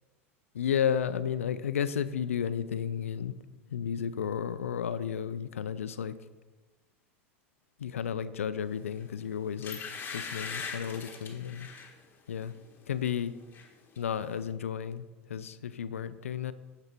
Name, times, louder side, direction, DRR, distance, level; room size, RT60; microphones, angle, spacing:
voice 1, 0.5-3.3 3.7-6.1 7.8-9.8 10.1-11.7 12.3-12.5 12.9-13.3 14.0-15.0 15.3-16.5, left 8 dB, 80° left, 14 dB, 0.5 m, -32 dB
sound 1, 8.9-9.1 9.6-11.9 12.4-12.6 12.9-13.7 13.9-14.0, left 5 dB, 30° left, 1.5 m, -40 dB
9.9 x 6.9 x 4.5 m, 1.2 s
hypercardioid pair, 85°, 7 cm